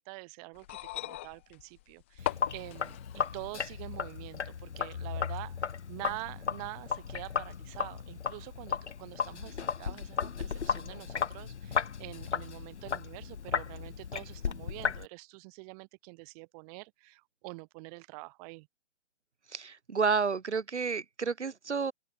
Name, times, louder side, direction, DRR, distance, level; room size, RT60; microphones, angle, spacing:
voice 1, 0.0-18.7, right 29 dB, 35° right, 8.0 m, -46 dB
sound 1, 0.5-3.5 4.6-4.7, left 16 dB, 10° left, 0.4 m, -39 dB
Sink (filling or washing), 2.2-15.1, left 6 dB, 80° left, 1.3 m, -35 dB
voice 2, 19.5-21.9, right 5 dB, 80° right, 2.7 m, -30 dB
open air
figure-of-eight pair, 130°, 34 cm